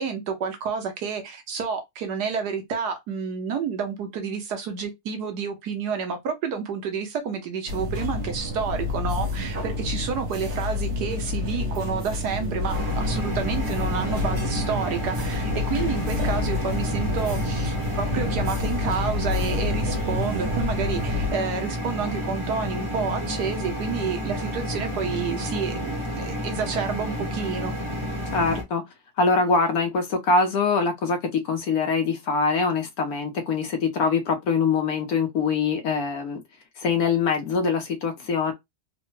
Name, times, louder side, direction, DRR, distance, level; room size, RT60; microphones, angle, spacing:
voice 1, 0.0-27.7, right 6 dB, 85° right, 1.5 m, -30 dB
sound 1, 7.7-21.3, left 3 dB, 50° right, 1.2 m, -28 dB
sound 2, 12.7-28.6, equal, 20° right, 1.0 m, -30 dB
voice 2, 28.3-28.8 29.2-31.2 31.4-36.4 36.8-38.5, left 4 dB, 70° left, 1.3 m, -23 dB
3.8 x 2.2 x 3.1 m
omnidirectional pair, 1.7 m